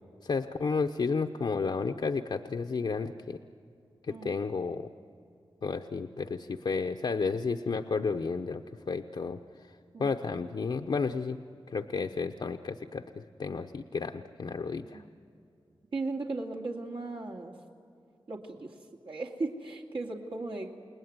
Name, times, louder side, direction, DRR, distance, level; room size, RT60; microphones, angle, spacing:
voice 1, 0.2-3.4 4.0-4.9 5.6-9.7 10.0-11.4 11.7-15.0, left 4 dB, 65° left, 5 dB, 0.8 m, -32 dB
voice 2, 15.9-17.5 18.3-18.8 19.0-20.7, right 3 dB, 75° right, 0 dB, 2.5 m, -36 dB
29.0 x 19.5 x 9.5 m, 2.5 s
wide cardioid pair, 100°, 9 cm